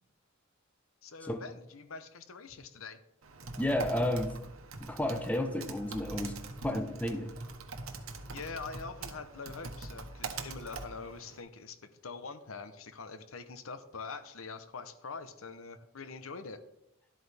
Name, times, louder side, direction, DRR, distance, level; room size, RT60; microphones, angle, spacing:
voice 1, 1.0-3.0 8.3-16.6, left 4 dB, 80° left, 11 dB, 0.8 m, -44 dB
Typing, 3.2-11.4, right 3 dB, 90° right, 1.2 m, -43 dB
voice 2, 3.6-4.4 4.8-6.4 6.6-7.3, left 1 dB, 5° left, 7 dB, 0.8 m, -32 dB
12.0 x 8.3 x 3.4 m, 0.84 s
head